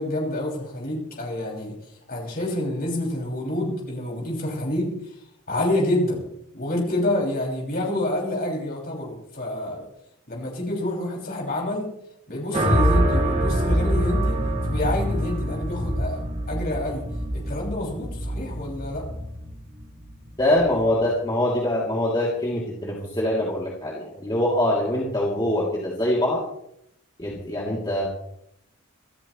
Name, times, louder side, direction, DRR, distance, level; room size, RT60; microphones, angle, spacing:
voice 1, 0.0-1.7 2.1-5.2 5.5-6.2 6.5-9.9 10.3-11.9 12.3-14.4 14.6-17.0 17.3-19.1, left 1 dB, 40° left, -2 dB, 6.2 m, -28 dB
sound 1, 12.5-20.8, right 1 dB, 30° right, 2.4 m, -25 dB
voice 2, 20.4-26.4 27.2-28.1, left 1 dB, 20° left, -5 dB, 2.9 m, -24 dB
27.0 x 13.5 x 3.2 m, 0.76 s
head